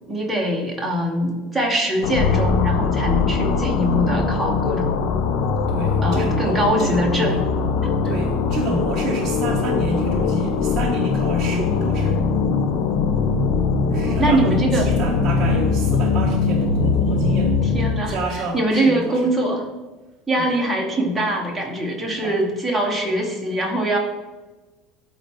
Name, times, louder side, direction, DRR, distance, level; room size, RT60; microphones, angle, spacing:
voice 1, 0.1-4.9 6.0-7.4 7.8-7.9 14.0-14.9 17.7-18.1 18.5-19.6 20.3-24.0, right 1 dB, ahead, -3 dB, 1.1 m, -22 dB
sound 1, 2.0-18.2, left 4 dB, 55° left, 0.6 m, -21 dB
voice 2, 5.7-7.4 7.8-12.2 13.9-17.6 18.1-19.2 20.4-20.5 22.2-22.4, right 2 dB, 15° right, -5 dB, 0.9 m, -29 dB
12.0 x 4.3 x 3.5 m, 1.2 s
cardioid pair, 175°, 0 cm